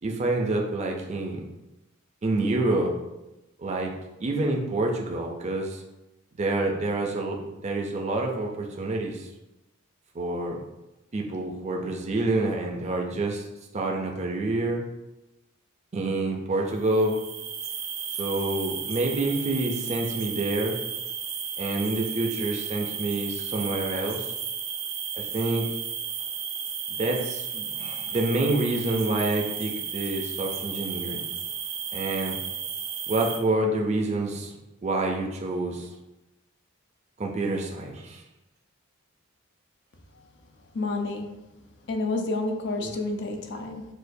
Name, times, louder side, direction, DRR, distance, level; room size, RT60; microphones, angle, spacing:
voice 1, 0.0-1.4 2.2-2.9 3.6-3.9 4.2-5.8 6.4-9.3 10.1-10.6 11.1-13.4 13.7-14.8 15.9-17.2 18.2-20.8 21.6-24.3 25.1-25.7 26.9-31.2 31.9-32.4 33.1-34.5 34.8-35.9 37.2-38.2 42.8-42.9, right 2 dB, 35° right, 1 dB, 0.5 m, -27 dB
sound 1, 16.8-33.4, right 7 dB, 85° right, 0.7 m, -33 dB
voice 2, 40.7-41.3 41.9-43.9, left 2 dB, 60° left, 4 dB, 0.5 m, -29 dB
6.4 x 2.3 x 2.6 m, 0.98 s
head